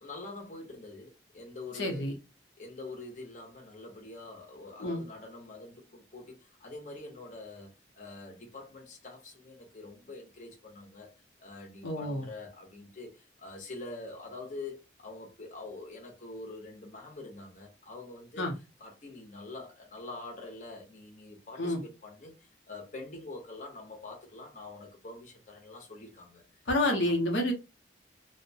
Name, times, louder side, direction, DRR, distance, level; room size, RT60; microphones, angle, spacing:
voice 1, 0.0-2.1 2.6-11.1 11.4-18.5 18.8-26.4 26.9-27.2, left 2 dB, 40° left, 0.7 m, -45 dB
voice 2, 1.8-2.1 4.8-5.0 11.8-12.3 18.4-18.5 21.6-21.8 26.7-27.5, left 1 dB, 75° left, 0.7 m, -29 dB
2.7 x 2.1 x 2.7 m
head